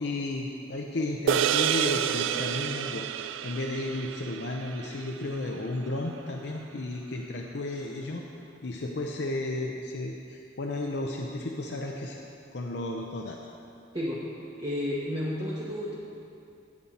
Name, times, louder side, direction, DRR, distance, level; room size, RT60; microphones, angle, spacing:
voice 1, 0.0-8.2 8.6-12.2 12.5-13.4, left 2 dB, 60° left, 0 dB, 0.7 m, -33 dB
sound 1, 1.3-5.8, right 9 dB, 90° right, 0.3 m, -29 dB
voice 2, 14.6-16.0, left 1 dB, 25° right, -5 dB, 1.1 m, -31 dB
18.0 x 7.4 x 4.2 m, 2.7 s
head